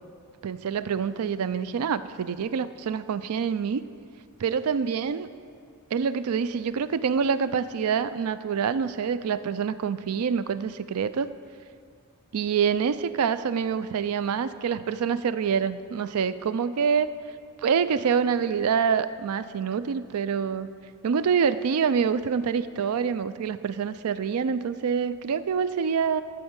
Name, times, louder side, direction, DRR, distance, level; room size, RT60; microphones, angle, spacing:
voice 1, 0.4-3.8 4.4-5.3 5.9-11.3 12.3-17.1 17.6-20.7 21.0-26.2, right 6 dB, 85° right, 14 dB, 0.4 m, -26 dB
11.0 x 4.4 x 7.9 m, 2.3 s
head